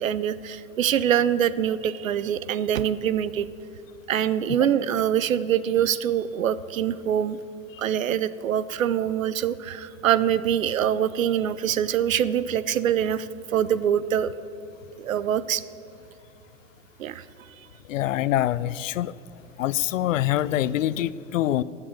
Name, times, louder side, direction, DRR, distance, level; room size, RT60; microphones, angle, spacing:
voice 1, 0.0-3.5 4.1-7.4 7.8-14.3 15.0-15.6 17.0-17.2, right 9 dB, 85° right, 17 dB, 0.6 m, -24 dB
voice 2, 17.9-19.1 19.6-21.6, left 13 dB, 75° left, 19 dB, 0.5 m, -25 dB
13.0 x 6.7 x 8.4 m, 2.7 s
hypercardioid pair, 95°, 39 cm